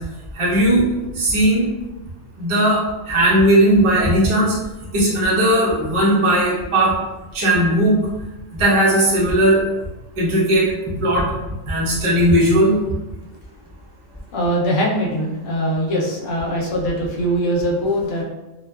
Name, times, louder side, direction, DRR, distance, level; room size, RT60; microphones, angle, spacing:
voice 1, 0.3-0.9 1.1-1.7 2.4-4.6 4.9-6.9 7.3-7.9 8.5-9.6 10.2-10.7 11.0-11.2 11.7-12.7, right 1 dB, 35° right, -6 dB, 0.6 m, -17 dB
voice 2, 14.3-18.2, equal, 75° left, -2 dB, 1.0 m, -21 dB
2.7 x 2.2 x 2.2 m, 1.1 s
omnidirectional pair, 1.3 m